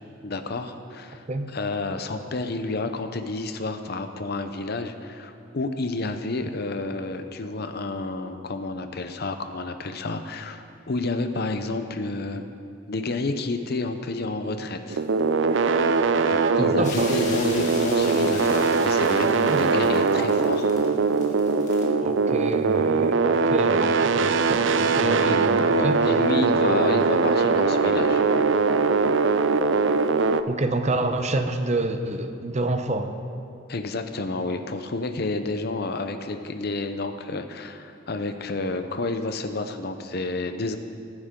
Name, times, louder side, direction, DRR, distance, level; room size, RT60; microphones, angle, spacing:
voice 1, 0.2-1.2 1.5-12.4 12.9-15.1 16.3-20.8 24.9-28.2 33.7-40.8, left 2 dB, 55° left, 8 dB, 0.8 m, -30 dB
sound 1, 14.9-30.4, right 4 dB, 70° right, 0.5 m, -21 dB
voice 2, 16.6-17.1 19.5-19.7 22.0-26.0 30.5-33.1, right 2 dB, 35° right, 7 dB, 0.8 m, -28 dB
sound 2, 16.8-21.9, left 2 dB, 40° left, 2.3 m, -37 dB
22.5 x 9.7 x 3.8 m, 2.5 s
head